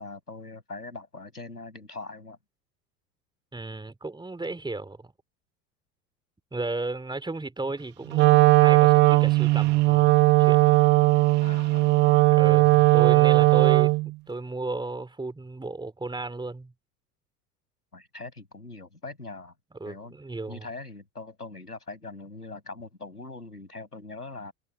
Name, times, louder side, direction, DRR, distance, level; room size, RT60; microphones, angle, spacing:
voice 1, 0.0-2.4 11.4-12.8 17.9-19.5 19.8-20.1 20.5-24.5, left 3 dB, 85° left, 7.6 m, -42 dB
voice 2, 3.5-5.1 6.5-10.1 10.4-11.0 12.4-16.7 19.8-20.7, right 2 dB, 10° right, 4.5 m, -34 dB
Wind instrument woodwind instrument, 8.1-14.1, right 21 dB, 25° right, 0.4 m, -18 dB
figure-of-eight pair, 75°, 45 cm